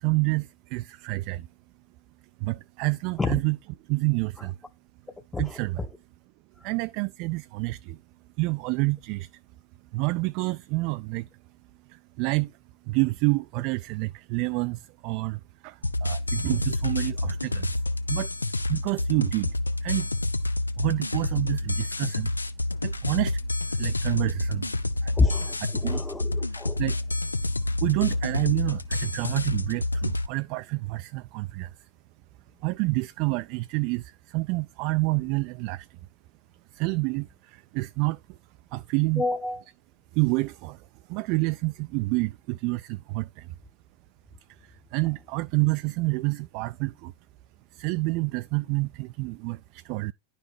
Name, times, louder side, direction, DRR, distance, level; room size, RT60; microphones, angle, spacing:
voice 1, 0.0-1.5 2.4-3.6 3.9-4.6 5.4-5.9 6.6-8.0 8.4-9.3 9.9-11.3 11.9-12.6 12.9-17.7 18.1-18.3 18.7-19.6 19.8-20.1 20.8-22.3 22.8-23.4 23.7-24.7 25.0-25.1 25.8-26.0 26.8-27.0 27.5-31.9 32.6-36.0 36.7-38.4 38.7-39.2 40.1-43.5 44.5-47.1 47.7-50.1, right 24 dB, 45° right, 0.4 m, -28 dB
voice 2, 5.3-5.9 6.6-6.7 25.2-26.8 39.1-39.6, left 2 dB, 10° left, 0.9 m, -28 dB
sound 1, 15.8-30.3, left 2 dB, 80° left, 0.7 m, -28 dB
11.0 x 5.8 x 4.4 m
figure-of-eight pair, 90°, 0 cm